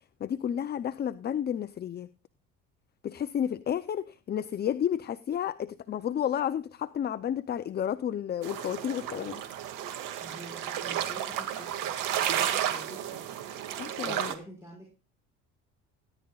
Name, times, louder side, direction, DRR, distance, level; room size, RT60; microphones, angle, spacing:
voice 1, 0.2-2.1 3.0-9.4 13.8-14.3, left 9 dB, 30° left, 13 dB, 0.6 m, -31 dB
sound 1, 8.4-14.4, right 10 dB, 80° right, 2.1 m, -32 dB
voice 2, 10.2-11.9 12.2-13.2 14.0-14.9, equal, 10° right, -1 dB, 5.7 m, -47 dB
17.5 x 11.0 x 2.4 m, 0.34 s
cardioid pair, 120°, 31 cm